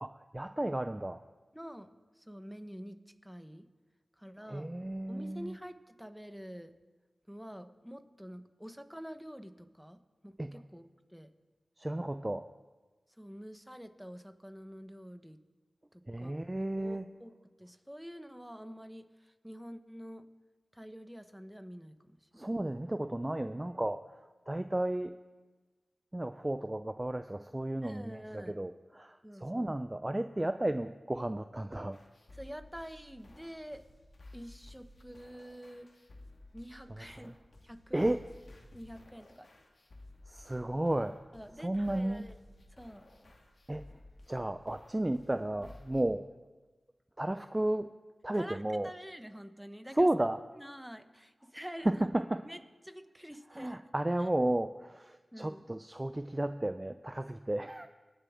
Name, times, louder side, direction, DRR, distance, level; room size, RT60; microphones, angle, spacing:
voice 1, 0.0-1.2 4.5-5.6 10.4-10.6 11.8-12.5 16.1-17.1 22.3-24.1 24.5-25.1 26.1-32.0 36.9-37.3 37.9-38.2 40.3-41.2 41.6-42.2 43.7-44.0 44.3-46.3 47.2-47.9 48.2-48.9 49.9-50.4 51.8-52.5 53.5-57.9, right 1 dB, 25° right, 9 dB, 0.4 m, -33 dB
voice 2, 1.5-3.0 3.2-3.6 4.2-4.7 5.1-6.7 7.3-10.0 10.2-11.3 13.2-15.4 15.9-16.3 16.8-17.3 17.6-20.2 20.7-22.2 27.8-28.6 29.2-29.7 32.3-33.8 34.3-35.9 36.5-37.3 37.6-38.1 38.7-39.5 41.3-42.4 42.7-43.0 48.3-50.1 50.5-52.1 52.4-53.9 55.3-55.6, equal, 5° right, 9 dB, 1.0 m, -47 dB
sound 1, 31.9-46.0, left 2 dB, 70° left, 1.6 m, -55 dB
21.0 x 7.0 x 3.6 m, 1.3 s
cardioid pair, 40°, 0 cm